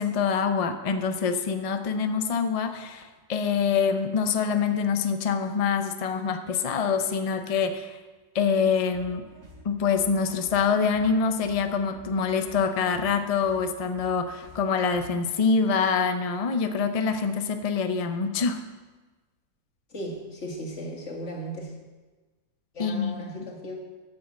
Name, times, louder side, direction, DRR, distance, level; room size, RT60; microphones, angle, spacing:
voice 1, 0.0-8.0 8.3-9.2 9.6-18.6 22.8-23.4, left 5 dB, 70° left, 8 dB, 0.3 m, -25 dB
sound 1, 8.9-15.4, equal, 75° right, 3.5 m, -50 dB
voice 2, 19.9-21.7 22.7-23.7, equal, 50° left, -1 dB, 2.2 m, -36 dB
11.5 x 6.4 x 7.5 m, 1.3 s
omnidirectional pair, 1.7 m